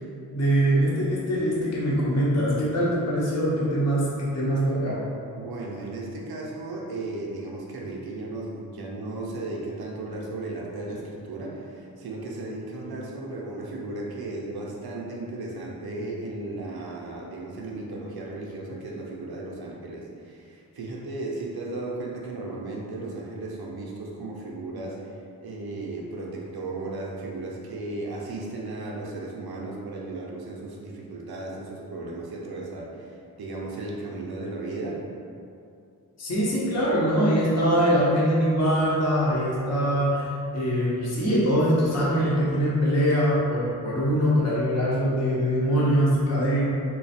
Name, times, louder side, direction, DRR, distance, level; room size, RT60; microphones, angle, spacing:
voice 1, 0.3-5.0 36.2-46.6, equal, 45° left, -7 dB, 0.8 m, -23 dB
voice 2, 5.4-35.0, right 2 dB, 80° right, -3 dB, 0.7 m, -35 dB
3.2 x 2.3 x 4.1 m, 2.5 s
wide cardioid pair, 115°, 37 cm